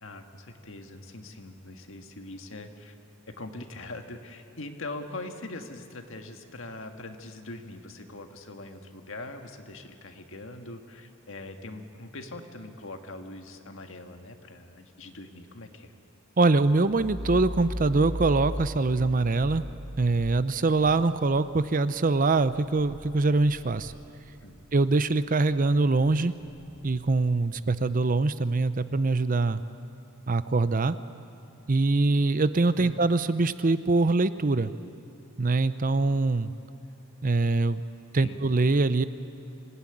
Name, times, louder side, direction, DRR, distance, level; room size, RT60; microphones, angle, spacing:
voice 1, 0.0-2.9 3.4-15.9 24.4-24.6 32.8-33.0 38.2-38.4, left 2 dB, 60° left, 5 dB, 1.7 m, -42 dB
voice 2, 16.4-19.6 20.0-23.9 24.7-26.3 26.8-29.6 30.3-30.9 31.7-34.7 35.4-36.5 37.2-37.8 38.1-39.0, right 3 dB, 40° right, 13 dB, 0.6 m, -23 dB
sound 1, 16.6-24.8 25.2-27.8, equal, 70° right, 3.9 m, -40 dB
25.5 x 17.0 x 10.0 m, 2.6 s
head